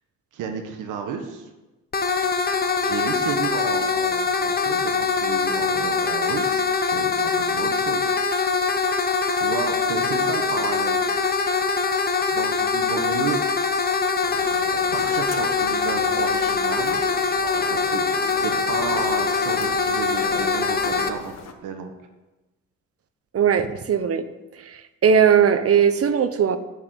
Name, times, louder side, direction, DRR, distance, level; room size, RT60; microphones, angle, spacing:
voice 1, 0.3-1.5 2.8-8.1 9.4-11.0 12.3-13.4 14.9-17.0 17.7-18.0 18.4-21.3 21.6-21.9, right 6 dB, 85° right, 5 dB, 1.5 m, -32 dB
sound 1, 1.9-21.1, left 5 dB, 30° left, 1.3 m, -23 dB
sound 2, 14.2-21.5, left 7 dB, 60° left, 1.4 m, -36 dB
voice 2, 23.3-24.2 24.7-26.6, right 7 dB, 50° right, 11 dB, 1.0 m, -19 dB
8.7 x 7.2 x 8.5 m, 1.1 s
cardioid pair, 90°, 30 cm